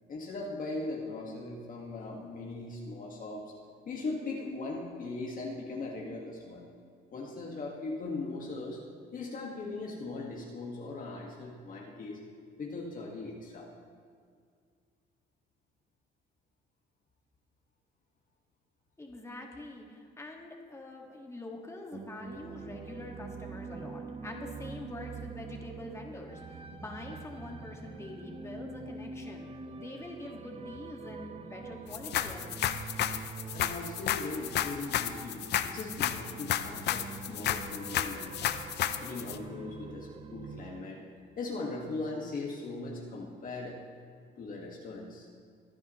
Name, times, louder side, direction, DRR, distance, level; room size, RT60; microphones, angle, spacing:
voice 1, 0.1-3.5 3.9-6.6 7.1-8.8 9.1-12.2 12.6-13.7 33.5-38.5 39.0-41.1 41.4-43.8 44.4-45.3, left 3 dB, 45° left, -2 dB, 1.8 m, -39 dB
voice 2, 19.0-29.5 29.7-32.5, left 2 dB, 15° left, 0 dB, 1.8 m, -45 dB
sound 1, 21.9-40.8, right 4 dB, 30° right, 0.6 m, -45 dB
sound 2, 31.9-39.4, left 11 dB, 65° left, 0.6 m, -32 dB
24.0 x 9.5 x 3.1 m, 2.2 s
cardioid pair, 115°, 19 cm